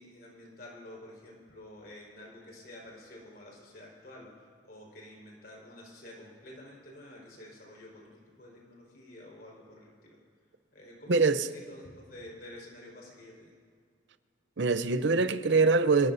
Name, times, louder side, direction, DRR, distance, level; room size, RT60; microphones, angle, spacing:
voice 1, 0.0-4.3 4.6-10.2 10.7-13.5, left 1 dB, 50° left, 4.9 m, -49 dB
voice 2, 11.1-11.5 14.6-16.1, right 4 dB, 70° right, 0.7 m, -24 dB
27.0 x 18.5 x 2.7 m
head